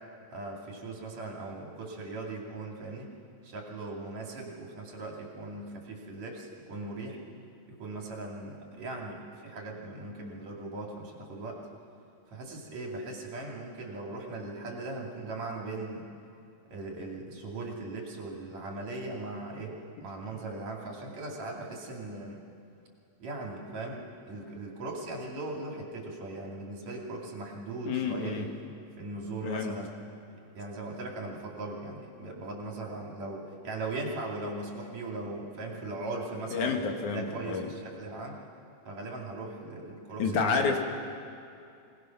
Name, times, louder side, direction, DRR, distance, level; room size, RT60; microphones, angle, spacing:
voice 1, 0.3-3.1 3.4-7.2 7.7-11.6 12.3-16.1 16.7-22.4 23.2-28.5 29.0-29.9 30.5-36.7 37.1-38.4 38.9-40.8, right 2 dB, 65° right, -1 dB, 3.8 m, -39 dB
voice 2, 27.9-28.5 29.4-29.7 36.5-37.7 40.2-40.8, left 5 dB, 80° left, 3 dB, 3.1 m, -29 dB
26.0 x 18.5 x 6.0 m, 2.5 s
omnidirectional pair, 3.4 m